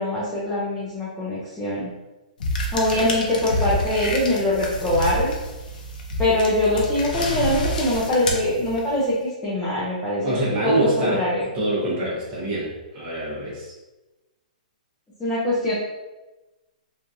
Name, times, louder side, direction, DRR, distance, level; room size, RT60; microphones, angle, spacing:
voice 1, 0.0-1.9 2.7-5.3 6.2-9.1 9.4-10.4 10.6-11.5 15.2-15.7, left 1 dB, 5° left, -10 dB, 0.5 m, -23 dB
sound 1, 2.4-9.1, left 1 dB, 70° left, 0.6 m, -28 dB
voice 2, 10.2-11.2 11.5-13.7, right 1 dB, 25° right, -5 dB, 0.9 m, -25 dB
3.0 x 2.4 x 2.6 m, 1.1 s
hypercardioid pair, 160°, 5 cm